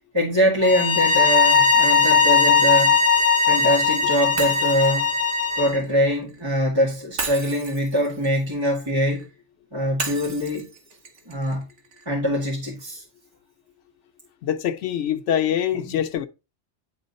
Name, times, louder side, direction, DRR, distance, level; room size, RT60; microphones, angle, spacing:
voice 1, 0.1-3.0 3.5-5.1 5.6-9.2 9.7-10.7 11.3-11.7 12.1-13.0, equal, 25° right, 1.9 m, -23 dB
sound 1, 0.6-5.8, left 5 dB, 35° left, 1.2 m, -18 dB
Shatter, 4.4-6.4 7.2-9.3 10.0-12.1, right 4 dB, 85° right, 1.5 m, -35 dB
voice 2, 14.4-16.3, left 10 dB, 80° left, 1.0 m, -24 dB
9.9 x 3.7 x 4.1 m
omnidirectional pair, 1.2 m